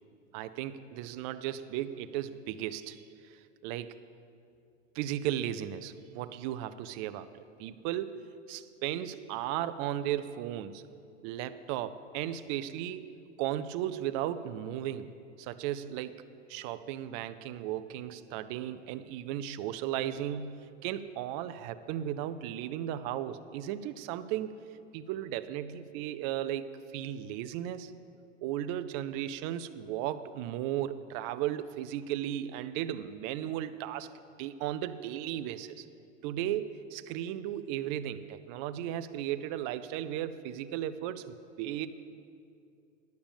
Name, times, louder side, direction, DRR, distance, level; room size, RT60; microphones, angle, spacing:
voice 1, 0.3-3.0 3.6-4.0 5.0-8.2 8.5-10.8 11.2-13.1 13.4-15.1 15.4-24.6 24.9-26.7 26.9-27.9 28.4-34.1 34.4-35.9 36.2-41.9, right 11 dB, 35° right, 12 dB, 0.4 m, -35 dB
10.5 x 6.8 x 7.2 m, 2.5 s
hypercardioid pair, 115°, 38 cm